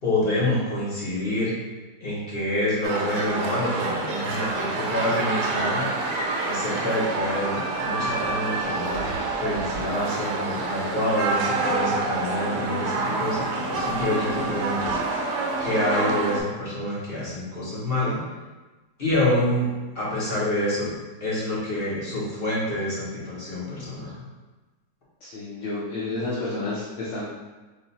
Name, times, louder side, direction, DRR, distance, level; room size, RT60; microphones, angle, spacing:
voice 1, 0.0-1.6 2.0-5.8 6.4-15.0 15.6-18.2 19.0-20.9 21.2-24.2, left 1 dB, 35° left, -8 dB, 1.4 m, -27 dB
sound 1, 2.8-16.4, right 3 dB, 80° right, 1.2 m, -27 dB
voice 2, 25.2-27.3, left 2 dB, 55° left, -8 dB, 1.0 m, -30 dB
3.8 x 2.6 x 4.1 m, 1.2 s
omnidirectional pair, 1.8 m